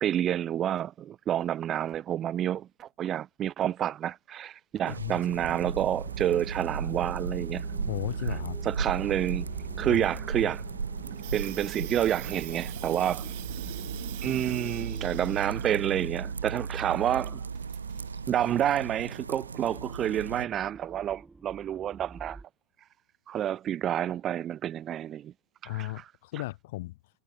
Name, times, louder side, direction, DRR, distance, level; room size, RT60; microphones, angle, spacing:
voice 1, 0.0-7.7 8.6-9.5 9.8-10.6 11.3-13.3 14.2-17.4 18.3-22.4 23.3-25.3 25.6-25.9, right 11 dB, 30° right, 0.6 m, -29 dB
voice 2, 4.8-5.2 7.9-8.6 9.9-10.1 25.6-27.0, left 19 dB, 50° left, 1.9 m, -35 dB
sound 1, 4.9-20.4, right 5 dB, 75° right, 1.1 m, -36 dB
sound 2, 5.4-22.5, right 3 dB, 10° right, 2.3 m, -48 dB
Water tap faucet / Sink (filling or washing), 11.0-18.6, right 22 dB, 50° right, 1.1 m, -45 dB
figure-of-eight pair, 90°, 0 cm